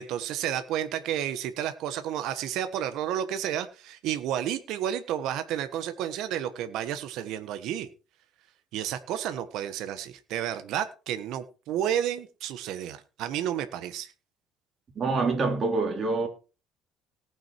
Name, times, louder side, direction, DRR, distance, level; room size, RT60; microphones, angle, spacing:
voice 1, 0.0-7.9 8.7-14.1, right 10 dB, 65° right, 1.4 m, -31 dB
voice 2, 14.9-16.3, right 3 dB, 35° right, 3.4 m, -26 dB
18.5 x 6.3 x 4.5 m
cardioid pair, 135°, 0 cm